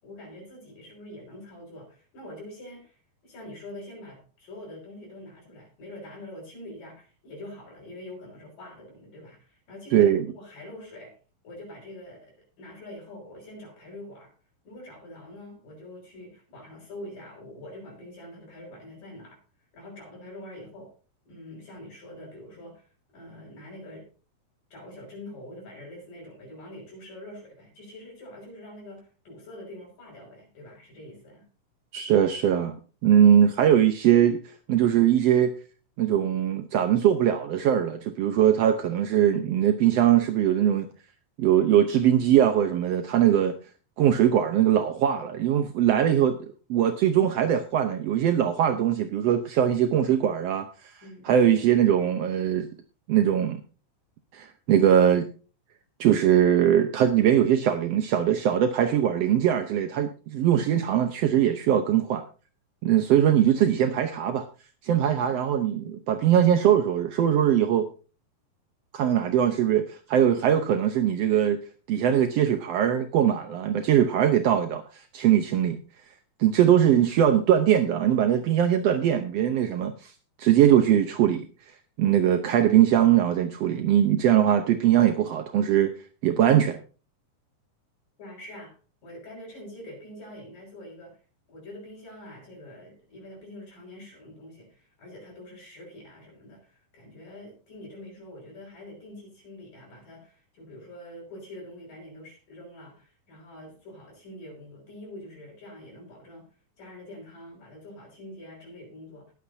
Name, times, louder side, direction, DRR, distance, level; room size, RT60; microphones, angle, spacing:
voice 1, 0.0-3.0 3.2-11.2 11.4-14.3 14.6-19.4 19.7-20.9 21.3-22.9 23.1-24.1 24.7-31.5 51.0-51.4 88.2-88.8 89.0-91.2 91.5-106.5 106.8-109.3, left 1 dB, 65° left, -3 dB, 7.5 m, -45 dB
voice 2, 9.9-10.3 31.9-32.7 33.0-34.4 34.7-35.5 36.0-40.9 41.4-43.5 44.0-46.4 46.7-50.7 51.3-52.7 53.1-53.6 54.3-55.3 56.0-62.2 62.8-64.4 64.8-67.9 68.9-71.6 71.9-74.8 75.1-75.8 76.4-80.1 80.4-81.4 82.0-85.9 86.2-86.8, right 10 dB, 80° right, 7 dB, 1.4 m, -21 dB
20.0 x 8.5 x 2.7 m, 0.36 s
omnidirectional pair, 4.0 m